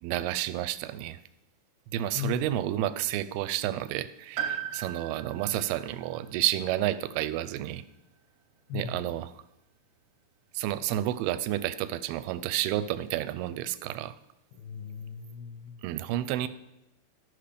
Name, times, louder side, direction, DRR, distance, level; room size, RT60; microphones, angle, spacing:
voice 1, 0.0-1.2 1.9-7.8 8.7-9.3 10.5-14.2 15.8-16.5, right 13 dB, 85° right, 14 dB, 2.5 m, -30 dB
voice 2, 2.1-3.0 8.7-9.2 14.5-15.8, left 9 dB, 85° left, 7 dB, 2.5 m, -39 dB
Piano, 4.4-8.2 8.5-8.6 9.7-9.8, right 9 dB, 60° right, 2.2 m, -39 dB
13.0 x 5.9 x 5.0 m, 0.87 s
omnidirectional pair, 4.5 m